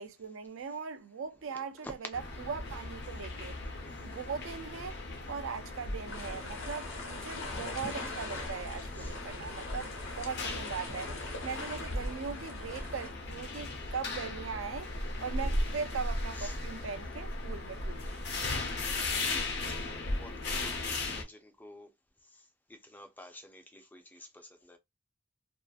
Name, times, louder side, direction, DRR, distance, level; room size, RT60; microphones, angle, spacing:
voice 1, 0.0-3.6 4.0-5.0 5.3-11.1 11.4-14.9 15.2-18.2, right 6 dB, 75° right, 0.5 m, -40 dB
voice 2, 1.4-1.9 3.8-4.2 8.9-9.2 13.8-13.9 15.4-15.5 16.3-16.6 17.6-17.8 18.7-21.9 22.2-24.8, left 1 dB, 10° left, 0.4 m, -52 dB
sound 1, 2.1-21.2, left 2 dB, 55° left, 0.6 m, -37 dB
sound 2, 6.1-13.1, left 2 dB, 75° left, 0.9 m, -42 dB
2.6 x 2.4 x 2.3 m
head